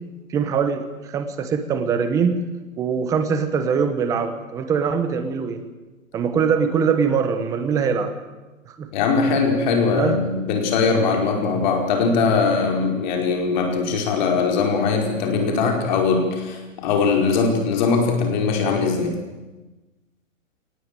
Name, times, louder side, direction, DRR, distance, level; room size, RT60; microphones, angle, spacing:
voice 1, 0.3-2.4 2.8-5.6 6.1-8.1 8.8-8.9 9.9-10.2, right 6 dB, 10° right, 8 dB, 1.1 m, -22 dB
voice 2, 8.9-19.2, left 4 dB, 35° left, 2 dB, 5.0 m, -21 dB
22.0 x 19.0 x 9.1 m, 1.1 s
hypercardioid pair, 160°, 40 cm